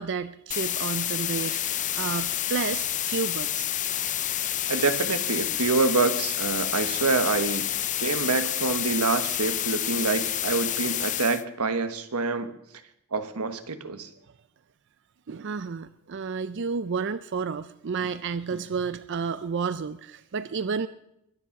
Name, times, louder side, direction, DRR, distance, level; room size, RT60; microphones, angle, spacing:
voice 1, 0.0-3.7 15.3-20.9, right 5 dB, 55° right, 13 dB, 0.5 m, -31 dB
sound 1, 0.5-11.4, left 12 dB, 35° left, 0.5 m, -29 dB
voice 2, 4.7-7.7 8.0-12.5 13.1-14.1, right 3 dB, 90° right, 10 dB, 1.3 m, -26 dB
22.0 x 10.5 x 5.9 m, 0.82 s
head